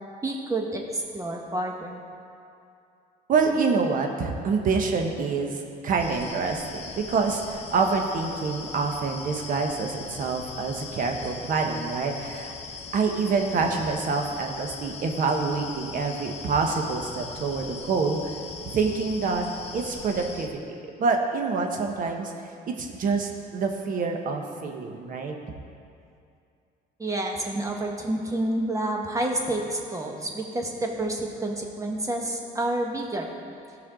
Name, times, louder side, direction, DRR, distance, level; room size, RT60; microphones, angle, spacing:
voice 1, 0.2-2.0 27.0-33.3, right 1 dB, 20° right, 1 dB, 1.4 m, -29 dB
voice 2, 3.3-12.5 12.9-18.3 18.7-19.5 19.7-22.3 22.7-25.4, right 4 dB, 55° right, 3 dB, 1.3 m, -26 dB
sound 1, 6.0-20.5, left 5 dB, 40° left, 1.0 m, -40 dB
17.0 x 5.7 x 3.8 m, 2.5 s
cardioid pair, 110°, 17 cm